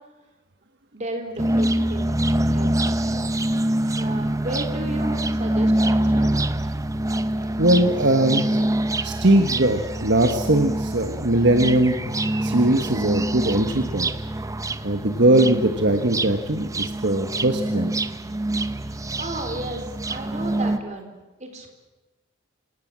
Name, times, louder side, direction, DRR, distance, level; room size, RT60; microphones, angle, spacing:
voice 1, 0.9-2.2 2.5-2.7 3.8-6.3 19.2-21.1 21.4-21.7, right 1 dB, 35° right, 4 dB, 3.8 m, -33 dB
sound 1, 1.4-20.8, right 1 dB, 15° right, 0.8 m, -25 dB
voice 2, 7.6-8.6 9.0-14.1 14.8-17.9, right 1 dB, 60° right, 6 dB, 1.4 m, -20 dB
27.0 x 17.5 x 7.5 m, 1.1 s
head